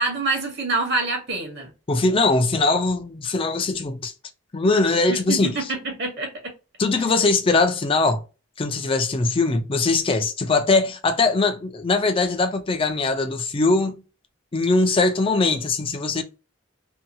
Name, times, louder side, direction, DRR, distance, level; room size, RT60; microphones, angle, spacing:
voice 1, 0.0-1.7 5.3-6.3, right 3 dB, 55° right, 1.0 m, -25 dB
voice 2, 1.9-4.1 4.5-5.6 6.8-8.2 8.6-14.0 14.5-16.2, left 3 dB, 25° left, 0.4 m, -21 dB
2.7 x 2.2 x 2.6 m
head